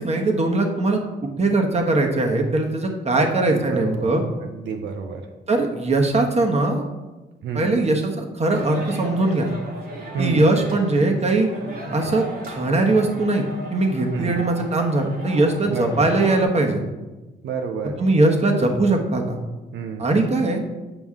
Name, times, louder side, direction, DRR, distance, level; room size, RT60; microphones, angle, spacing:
voice 1, 0.0-4.2 5.5-6.8 7.5-9.5 10.2-11.5 11.9-13.5 13.7-16.8 18.0-19.4 20.0-20.6, right 2 dB, 35° right, 2 dB, 1.3 m, -20 dB
voice 2, 3.1-4.1 4.4-5.2 7.4-7.7 10.1-10.4 14.1-14.4 15.7-16.1 17.4-18.0 19.7-20.1, right 5 dB, 90° right, 4 dB, 0.7 m, -29 dB
sound 1, 8.5-16.4, right 1 dB, 60° right, 2.0 m, -35 dB
9.1 x 5.2 x 3.7 m, 1.1 s
cardioid pair, 90°, 18 cm